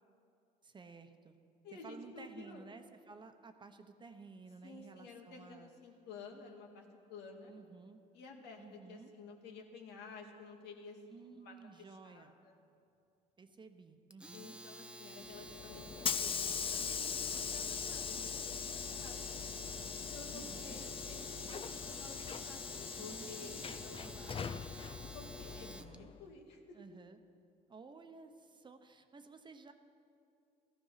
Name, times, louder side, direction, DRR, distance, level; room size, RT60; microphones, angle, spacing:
voice 1, 0.6-1.4 1.8-5.7 7.5-8.0 8.6-9.1 11.1-12.3 13.4-14.6 20.3-20.8 23.0-24.6 25.6-26.1 26.7-27.2 27.7-29.7, right 4 dB, 25° right, 7 dB, 1.0 m, -54 dB
voice 2, 1.6-2.7 4.6-7.5 8.1-12.6 14.3-16.4 16.7-19.3 20.0-24.4 25.1-26.8, left 4 dB, 80° left, 2 dB, 2.2 m, -53 dB
Domestic sounds home sounds, 14.1-26.0, right 1 dB, 5° right, 0.7 m, -51 dB
Hiss / Sliding door, 15.3-26.2, left 7 dB, 30° left, 0.6 m, -41 dB
16.5 x 14.0 x 5.8 m, 2.5 s
cardioid pair, 110°, 17 cm